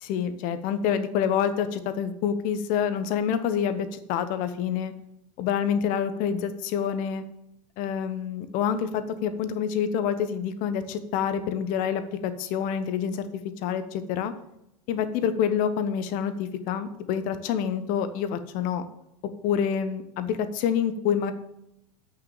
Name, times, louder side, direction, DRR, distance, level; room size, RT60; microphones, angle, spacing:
voice 1, 0.0-4.9 5.4-7.2 7.8-13.2 13.6-14.3 14.9-18.8 19.4-21.3, left 8 dB, 45° left, 11 dB, 1.1 m, -27 dB
8.3 x 6.6 x 7.1 m, 0.84 s
figure-of-eight pair, 85°, 19 cm